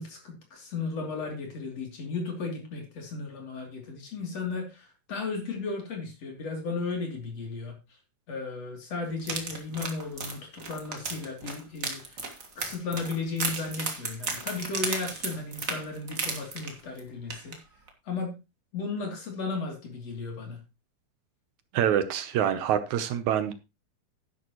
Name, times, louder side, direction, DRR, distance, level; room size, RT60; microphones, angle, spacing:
voice 1, 0.0-7.8 8.3-12.3 12.6-17.6 18.0-18.4 18.7-20.6, left 4 dB, 55° left, 1 dB, 4.0 m, -35 dB
sound 1, 9.2-17.0 17.3-17.6 17.9-18.0, right 3 dB, 35° right, 1.7 m, -34 dB
voice 2, 21.7-23.5, right 10 dB, 75° right, 11 dB, 2.2 m, -26 dB
11.0 x 10.5 x 3.0 m, 0.26 s
omnidirectional pair, 3.5 m